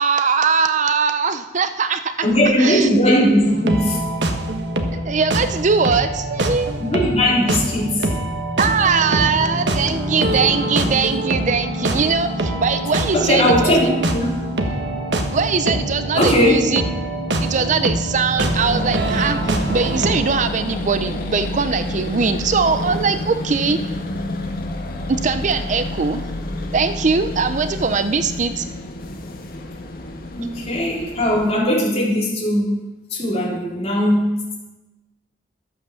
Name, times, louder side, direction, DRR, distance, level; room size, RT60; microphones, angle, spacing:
voice 1, 0.0-2.3 2.6-2.9 5.0-6.8 8.6-14.0 15.3-16.8 17.4-23.8 25.1-26.2 26.7-28.7, right 5 dB, 45° right, 11 dB, 0.6 m, -21 dB
voice 2, 2.2-4.0 6.8-8.1 13.1-14.3 16.1-16.6 30.4-32.8 33.1-34.4, equal, 35° left, -4 dB, 4.3 m, -18 dB
sound 1, 3.4-20.1, right 1 dB, 70° right, 1.3 m, -24 dB
sound 2, 8.6-19.9, left 1 dB, 5° left, 4.2 m, -34 dB
sound 3, 18.4-31.5, left 1 dB, 55° left, 1.4 m, -29 dB
12.5 x 8.3 x 7.0 m, 1.1 s
head